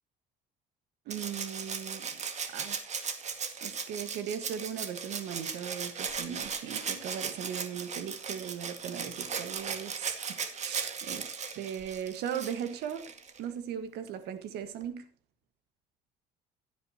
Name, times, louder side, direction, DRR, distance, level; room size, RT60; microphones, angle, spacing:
voice 1, 1.0-2.2 2.5-2.8 3.6-10.2 10.6-13.1 13.4-15.0, right 8 dB, 75° right, 1.6 m, -38 dB
Rattle (instrument), 1.1-13.4 14.8-14.9, right 6 dB, 40° right, 2.0 m, -37 dB
16.0 x 9.3 x 2.9 m
supercardioid pair, 90°, 17 cm